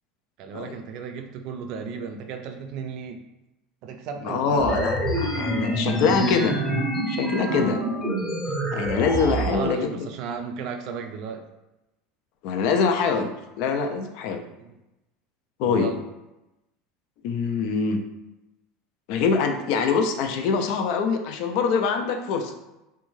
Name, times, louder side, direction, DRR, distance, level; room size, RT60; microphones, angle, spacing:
voice 1, 0.4-3.2 3.8-4.9 7.5-7.7 8.5-8.7 9.1-11.4 14.6-14.8 15.6-16.0, right 6 dB, 55° right, 5 dB, 0.4 m, -34 dB
voice 2, 4.2-6.6 7.1-7.8 8.7-10.1 12.4-13.3 13.6-14.4 15.6-15.9 17.2-18.0 19.1-22.5, left 5 dB, 60° left, 5 dB, 0.4 m, -24 dB
sound 1, 4.6-9.6, right 1 dB, 10° left, 0.7 m, -26 dB
2.6 x 2.2 x 3.0 m, 0.96 s
supercardioid pair, 135°, 0 cm